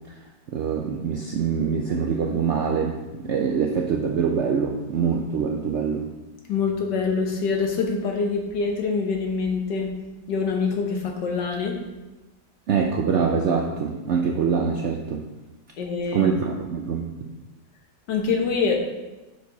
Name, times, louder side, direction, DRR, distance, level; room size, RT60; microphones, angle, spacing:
voice 1, 0.5-6.1 12.7-15.2 16.1-17.1, right 6 dB, 75° right, 2 dB, 0.6 m, -24 dB
voice 2, 6.5-9.9 10.3-11.8 15.8-16.3 18.1-18.8, left 5 dB, 80° left, 2 dB, 1.7 m, -25 dB
6.5 x 4.7 x 5.3 m, 1.1 s
omnidirectional pair, 1.8 m